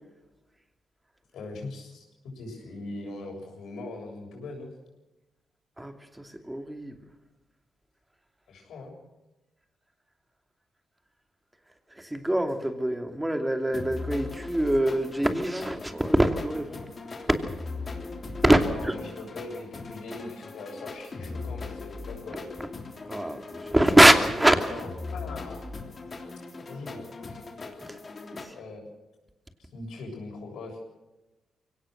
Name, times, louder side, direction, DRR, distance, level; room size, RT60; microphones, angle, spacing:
voice 1, 1.3-4.7 8.5-8.9 18.6-22.5 24.6-25.7 26.6-27.4 28.5-28.9 29.6-30.8, left 2 dB, 80° left, 1 dB, 7.3 m, -41 dB
voice 2, 5.8-7.0 11.9-16.8 17.3-17.4 18.4-18.9 23.1-24.7 27.8-28.0 28.3-28.5, right 1 dB, 10° right, 6 dB, 2.7 m, -23 dB
sound 1, 13.7-28.5, left 3 dB, 40° left, 3.3 m, -39 dB
23.5 x 18.0 x 6.6 m, 1.1 s
cardioid pair, 80°, 0 cm